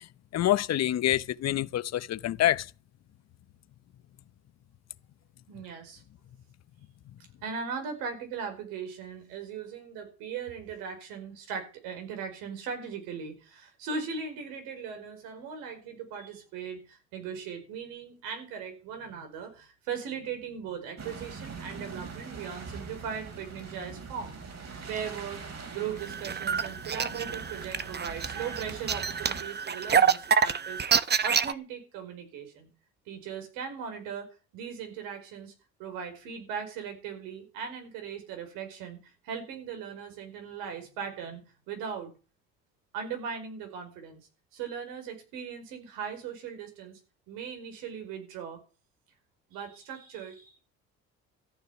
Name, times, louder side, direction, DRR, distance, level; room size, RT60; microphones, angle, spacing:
voice 1, 0.3-2.7, left 13 dB, 50° left, 0.8 m, -26 dB
voice 2, 5.5-6.0 7.4-24.4 24.9-25.4 25.7-30.8 31.2-32.7 33.1-35.5 35.8-39.0 39.2-42.1 42.9-47.0 47.3-48.6 49.5-50.6, right 6 dB, 80° right, 5.0 m, -38 dB
sound 1, 21.0-29.4, right 5 dB, 50° right, 4.6 m, -42 dB
sound 2, 26.0-31.5, right 6 dB, 30° right, 1.0 m, -27 dB
14.0 x 6.6 x 9.9 m
hypercardioid pair, 65°, 33 cm